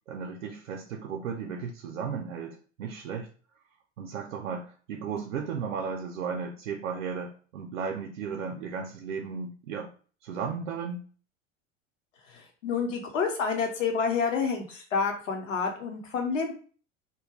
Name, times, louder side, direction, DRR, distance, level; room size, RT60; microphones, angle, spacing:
voice 1, 0.1-3.3 4.0-9.9 10.2-11.1, right 6 dB, 75° right, 1 dB, 0.5 m, -35 dB
voice 2, 12.3-16.5, left 5 dB, 80° left, 3 dB, 0.8 m, -29 dB
2.2 x 2.1 x 3.4 m, 0.41 s
figure-of-eight pair, 80°, 38 cm